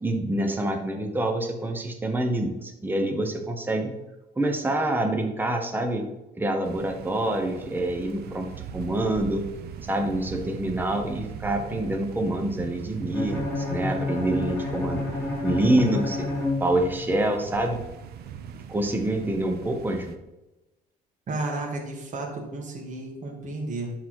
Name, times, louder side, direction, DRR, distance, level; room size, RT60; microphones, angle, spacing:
voice 1, 0.0-3.9 4.4-6.0 6.4-8.5 8.7-9.5 9.8-15.0 15.4-16.3 16.6-17.8 18.7-20.2, right 1 dB, 10° right, 4 dB, 1.1 m, -26 dB
sound 1, 6.6-20.2, right 8 dB, 70° right, 0.8 m, -40 dB
Bowed string instrument, 13.1-17.3, left 3 dB, 15° left, 3.1 m, -30 dB
voice 2, 21.3-23.9, right 2 dB, 45° right, 0 dB, 2.0 m, -32 dB
11.0 x 4.1 x 4.5 m, 1.0 s
cardioid pair, 110°, 17 cm